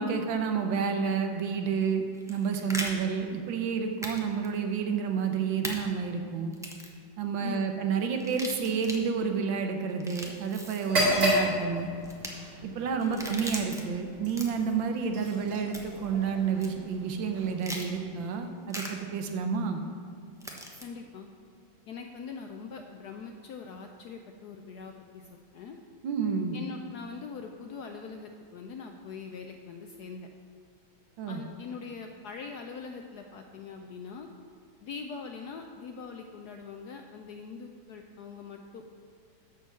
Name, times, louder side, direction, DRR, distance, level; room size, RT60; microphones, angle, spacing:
voice 1, 0.0-6.5 7.2-11.9 12.6-19.8 26.0-26.6 31.2-31.4, right 6 dB, 75° right, 5 dB, 1.5 m, -30 dB
sound 1, 2.1-2.9 4.0-4.2 4.4-4.5 5.6-5.8 6.5-6.9 8.2-9.0 9.9-10.9 12.0-12.3 13.0-13.8 14.2-14.7 15.7-16.0 16.6-16.7 17.6-17.9 18.7-18.9 20.4-20.8, equal, 5° right, 0.3 m, -38 dB
voice 2, 7.4-7.7 13.0-13.3 20.8-21.3 21.9-25.8 26.5-30.3 31.3-34.3 34.8-38.9, left 5 dB, 75° left, 4 dB, 0.9 m, -42 dB
sound 2, 10.8-18.6, equal, 45° right, 2.8 m, -33 dB
11.5 x 4.6 x 7.3 m, 2.3 s
omnidirectional pair, 2.2 m